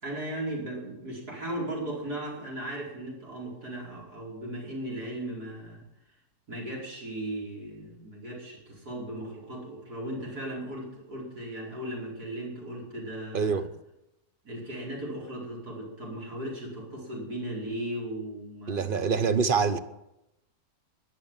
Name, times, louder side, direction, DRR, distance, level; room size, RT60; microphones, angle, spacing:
voice 1, 0.0-5.8 6.5-13.7 14.4-19.3, right 1 dB, 75° right, 5.4 m, -37 dB
voice 2, 13.3-13.7 18.7-19.8, right 5 dB, 40° right, 0.9 m, -25 dB
21.0 x 7.6 x 8.9 m
omnidirectional pair, 1.7 m